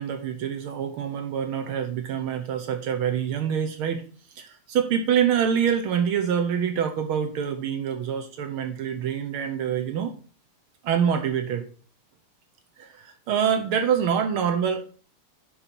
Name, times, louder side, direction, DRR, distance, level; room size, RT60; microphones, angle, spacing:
voice 1, 0.0-4.0 4.4-10.1 10.8-11.6 12.8-14.8, right 8 dB, 75° right, 7 dB, 1.7 m, -25 dB
7.1 x 5.7 x 5.2 m, 0.41 s
omnidirectional pair, 2.4 m